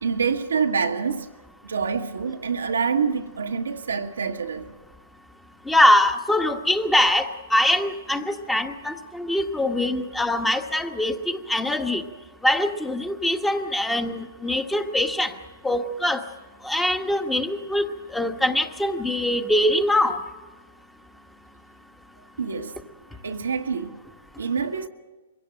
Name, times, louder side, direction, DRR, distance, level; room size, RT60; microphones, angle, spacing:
voice 1, 0.0-1.3 1.6-4.7 22.4-22.8 23.2-24.0 24.4-24.9, right 5 dB, 90° right, 1.3 m, -26 dB
voice 2, 5.7-12.0 12.4-15.3 15.6-16.2 16.6-17.8 18.1-20.2, left 1 dB, 5° left, 1.3 m, -23 dB
23.0 x 16.5 x 7.7 m
hypercardioid pair, 125°, 0 cm